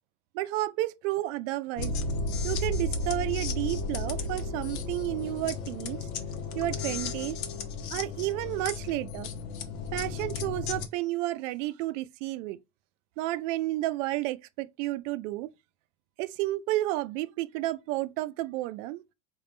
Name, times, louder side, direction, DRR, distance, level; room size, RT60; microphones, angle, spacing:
voice 1, 0.3-1.9 2.4-6.1 6.5-7.4 7.9-9.3 9.9-12.6 13.2-15.5 16.2-19.0, right 17 dB, 65° right, 0.5 m, -31 dB
sound 1, 1.8-10.9, left 3 dB, 90° left, 0.8 m, -33 dB
3.6 x 2.3 x 3.7 m
supercardioid pair, 125°, 41 cm